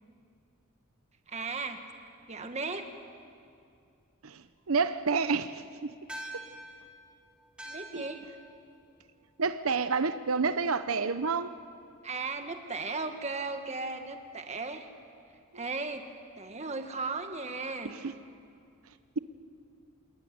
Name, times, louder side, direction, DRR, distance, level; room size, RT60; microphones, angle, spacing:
voice 1, 1.3-1.8 2.3-2.9 7.6-8.2 12.0-14.9 15.5-16.1 16.4-18.0, right 3 dB, 30° right, 1.7 m, -36 dB
voice 2, 4.7-5.9 7.9-8.0 9.4-11.5 17.9-18.1, right 4 dB, 90° right, 0.8 m, -29 dB
sound 1, 6.1-10.8, right 1 dB, 5° right, 2.4 m, -48 dB
27.0 x 20.5 x 9.6 m
head